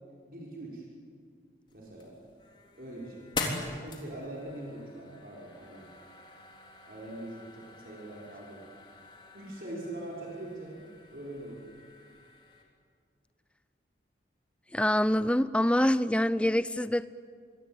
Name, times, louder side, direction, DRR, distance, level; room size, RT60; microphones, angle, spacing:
voice 1, 0.3-0.8 1.7-2.1 2.8-3.3 3.6-5.9 6.9-8.7 9.3-10.8 11.1-11.7, right 1 dB, 55° right, -3 dB, 5.5 m, -42 dB
sound 1, 1.7-12.6, left 3 dB, 25° left, 3.7 m, -43 dB
voice 2, 14.7-17.0, left 1 dB, 5° left, 15 dB, 0.6 m, -25 dB
28.0 x 23.0 x 9.1 m, 2.1 s
head